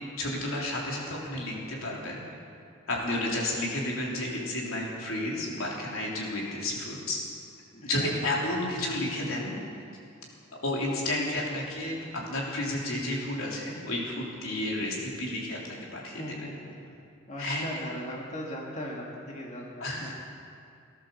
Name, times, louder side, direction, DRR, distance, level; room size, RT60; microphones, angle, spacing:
voice 1, 0.0-2.2 2.9-7.2 7.8-9.6 10.6-16.4 17.4-17.7 19.8-20.1, left 1 dB, 85° left, -3 dB, 3.5 m, -31 dB
voice 2, 7.7-8.4 16.2-16.7 17.3-20.1, equal, 35° left, -2 dB, 1.9 m, -39 dB
18.5 x 11.0 x 7.1 m, 2.4 s
head